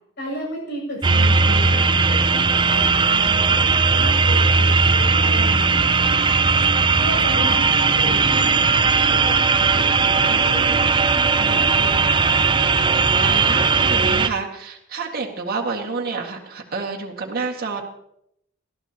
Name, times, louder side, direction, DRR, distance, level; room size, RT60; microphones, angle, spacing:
voice 1, 0.2-3.6 3.9-6.6 7.0-10.9 11.3-12.4, equal, 55° left, -1 dB, 7.6 m, -34 dB
sound 1, 1.0-14.3, right 4 dB, 25° right, 0.5 m, -18 dB
sound 2, 6.8-12.2, equal, 25° left, 7.2 m, -46 dB
voice 2, 13.2-17.8, right 4 dB, 50° right, 0 dB, 2.0 m, -29 dB
20.5 x 14.0 x 2.9 m, 0.75 s
head